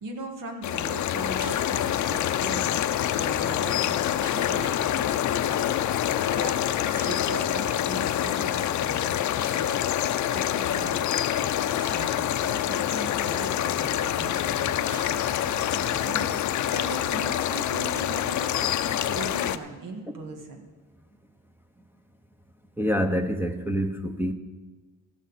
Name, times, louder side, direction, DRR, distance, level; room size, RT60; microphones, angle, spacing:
voice 1, 0.0-9.8 10.3-11.1 11.6-20.6, right 2 dB, 70° right, 4 dB, 1.9 m, -39 dB
sound 1, 0.6-19.6, left 11 dB, 60° left, 0.6 m, -26 dB
sound 2, 1.3-1.7 2.8-3.1 4.2-4.8 5.8-6.0 7.0-7.5 8.5-8.7 9.1-9.2 9.4-9.8 10.7-11.4 11.8-12.2 12.8-13.8 14.1-14.2 14.4-14.5 14.9-15.7 16.0-16.1 16.4-17.5, right 1 dB, 35° right, 4.6 m, -46 dB
sound 3, 6.8-10.7, right 4 dB, 50° right, 2.8 m, -50 dB
voice 2, 22.8-24.3, equal, 5° right, 7 dB, 0.8 m, -26 dB
14.0 x 11.5 x 4.1 m, 1.3 s
cardioid pair, 100°, 33 cm